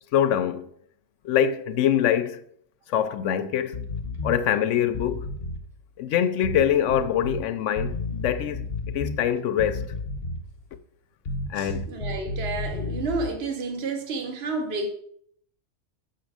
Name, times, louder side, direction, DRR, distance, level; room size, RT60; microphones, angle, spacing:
voice 1, 0.1-0.7 1.2-2.4 2.9-3.8 4.2-5.3 6.0-8.7 8.9-9.8 11.5-11.9, left 9 dB, 85° left, 0.9 m, -24 dB
sound 1, 3.7-4.4 4.9-5.6 6.4-7.4 7.8-9.2 9.6-10.5 11.3-13.3, left 2 dB, 60° left, 1.0 m, -32 dB
voice 2, 11.6-14.9, right 3 dB, 60° right, 1.2 m, -30 dB
6.2 x 6.2 x 4.8 m
omnidirectional pair, 1.2 m